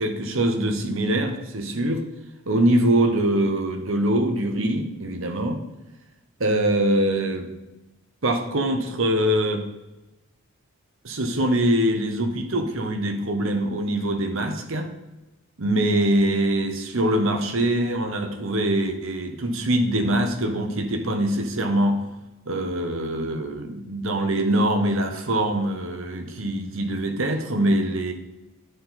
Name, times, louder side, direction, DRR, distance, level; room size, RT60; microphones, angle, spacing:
voice 1, 0.0-2.0 2.5-5.6 6.4-7.5 8.2-9.6 11.0-14.9 15.6-22.0 22.5-28.1, right 1 dB, 60° right, 6 dB, 1.0 m, -23 dB
9.2 x 4.4 x 4.0 m, 1.0 s
head